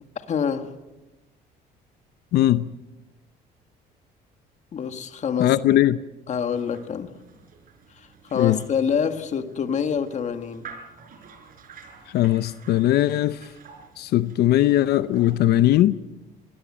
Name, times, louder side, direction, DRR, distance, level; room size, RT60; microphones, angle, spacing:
voice 1, 0.1-0.7 4.7-5.5 6.3-7.1 8.2-10.7, left 7 dB, 45° left, 1.8 m, -26 dB
voice 2, 2.3-2.7 5.4-6.0 8.3-8.6 12.1-13.4 14.0-16.0, left 14 dB, 75° left, 0.7 m, -19 dB
sound 1, 6.3-15.7, right 6 dB, 55° right, 5.0 m, -49 dB
25.0 x 17.5 x 8.6 m
cardioid pair, 110°, 17 cm